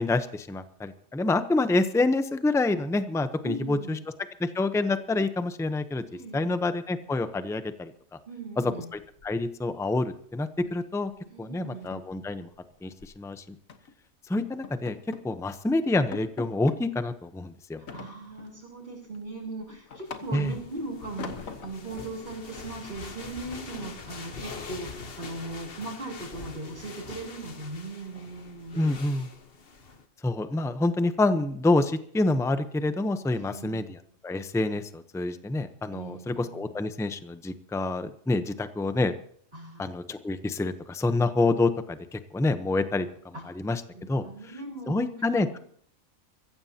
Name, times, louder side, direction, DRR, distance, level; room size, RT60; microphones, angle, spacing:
voice 1, 0.0-4.0 4.4-6.0 6.3-7.9 8.9-11.1 11.4-12.5 12.8-13.4 14.3-15.0 15.2-17.8 20.3-20.5 28.8-29.3 30.2-39.1 39.8-44.2 44.9-45.6, left 2 dB, 5° left, 10 dB, 0.5 m, -27 dB
voice 2, 3.4-4.0 6.1-6.6 8.3-8.9 11.2-12.0 17.8-28.9 33.3-34.0 35.9-36.8 39.5-40.0 43.3-43.4 43.9-45.6, right 2 dB, 35° right, -7 dB, 4.2 m, -39 dB
sound 1, 8.9-9.8 10.0-10.3 10.6-10.8 11.1-11.2 11.6-13.2 13.7-14.0 14.4-15.3 15.7-15.8 16.1-16.8 17.9-18.6 19.0-20.6 21.2-21.9, left 5 dB, 80° left, 1.7 m, -43 dB
sound 2, 20.0-30.0, left 4 dB, 45° left, 1.3 m, -43 dB
24.0 x 15.0 x 2.9 m, 0.62 s
omnidirectional pair, 1.4 m